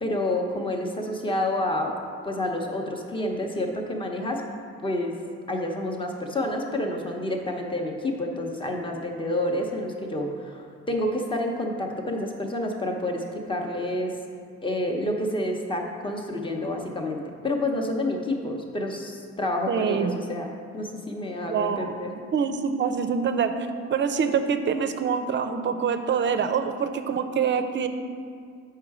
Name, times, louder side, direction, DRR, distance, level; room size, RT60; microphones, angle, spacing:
voice 1, 0.0-1.9 2.2-4.4 4.8-5.2 5.5-14.2 14.6-20.5 20.7-22.1, left 1 dB, 15° left, 2 dB, 0.9 m, -29 dB
voice 2, 19.7-20.2 21.4-22.0 22.3-27.9, right 6 dB, 40° right, 8 dB, 0.5 m, -25 dB
7.5 x 5.6 x 4.8 m, 2.2 s
cardioid pair, 120°, 29 cm